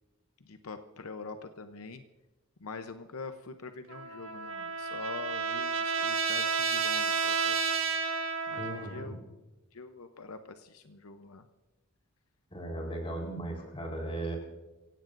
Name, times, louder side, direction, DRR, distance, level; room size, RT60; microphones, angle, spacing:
voice 1, 0.4-2.0 2.6-7.6 8.5-9.2 9.7-11.5, left 4 dB, 85° left, 8 dB, 0.8 m, -44 dB
Trumpet, 3.9-9.0, right 5 dB, 70° right, 1.6 m, -31 dB
voice 2, 8.6-9.2 12.5-14.4, right 1 dB, 25° left, 1 dB, 3.9 m, -37 dB
25.0 x 17.0 x 2.6 m, 1.0 s
head